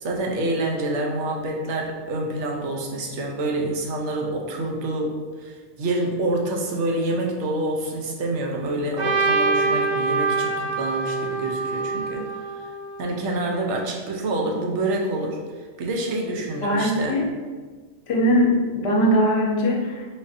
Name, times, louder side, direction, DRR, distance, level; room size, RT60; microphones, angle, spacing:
voice 1, 0.0-12.3 13.0-15.4 15.8-17.2, right 1 dB, 75° right, 0 dB, 0.9 m, -27 dB
Trumpet, 9.0-13.1, right 3 dB, 60° right, 0.4 m, -25 dB
voice 2, 16.6-17.3 18.1-20.1, equal, 65° left, -2 dB, 0.9 m, -21 dB
4.0 x 2.5 x 2.5 m, 1.4 s
omnidirectional pair, 1.2 m